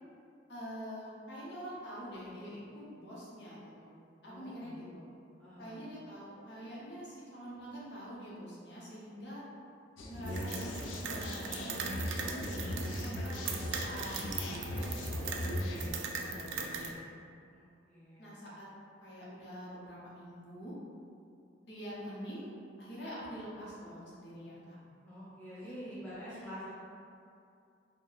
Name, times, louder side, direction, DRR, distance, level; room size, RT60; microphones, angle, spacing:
voice 1, 0.5-3.9 4.2-5.0 5.6-9.4 10.0-14.3 14.7-17.0 18.2-18.7 19.0-20.7 21.6-22.5 22.8-24.8 25.6-25.9 26.3-26.5, equal, 60° left, -8 dB, 0.8 m, -46 dB
voice 2, 4.2-4.8 5.4-5.8 17.5-18.3 25.1-26.7, equal, 10° left, -11 dB, 0.8 m, -47 dB
sound 1, 10.0-15.9, left 1 dB, 90° left, 0.4 m, -38 dB
sound 2, 10.2-16.9, right 5 dB, 85° right, 0.3 m, -40 dB
2.7 x 2.1 x 3.9 m, 2.4 s
head